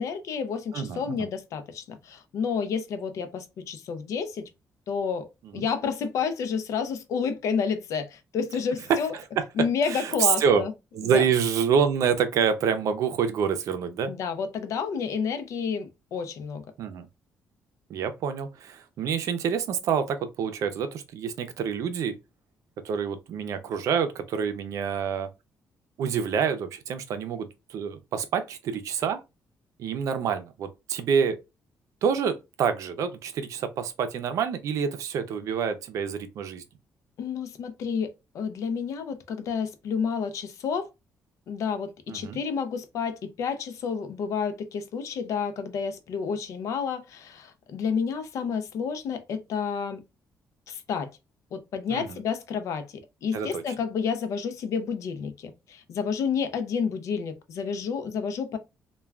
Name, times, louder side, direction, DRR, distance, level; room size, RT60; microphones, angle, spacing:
voice 1, 0.0-4.5 4.9-5.3 5.5-9.1 9.6-10.7 11.0-11.2 14.1-16.6 37.2-40.9 41.5-50.0 50.7-51.1 51.5-52.9 53.2-58.6, left 6 dB, 70° left, 0.5 m, -30 dB
voice 2, 0.7-1.3 5.4-5.7 9.1-10.6 10.9-14.1 16.8-17.1 17.9-22.2 22.8-25.3 26.0-29.2 29.8-31.4 32.0-36.6 42.1-42.4 51.9-52.2 53.3-53.6, right 7 dB, 75° right, 0.5 m, -27 dB
2.3 x 2.2 x 3.2 m
cardioid pair, 110°, 6 cm